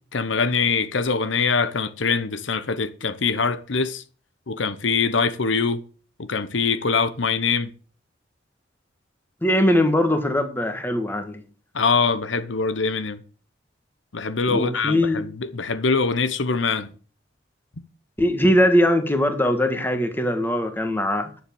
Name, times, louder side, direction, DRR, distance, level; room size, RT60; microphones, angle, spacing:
voice 1, 0.1-4.0 4.5-5.8 6.2-7.7 11.7-13.2 14.1-16.9, left 4 dB, 85° left, 0.9 m, -23 dB
voice 2, 9.4-11.4 14.5-15.2 18.2-21.3, left 1 dB, 10° left, 1.6 m, -21 dB
10.5 x 7.2 x 7.0 m
head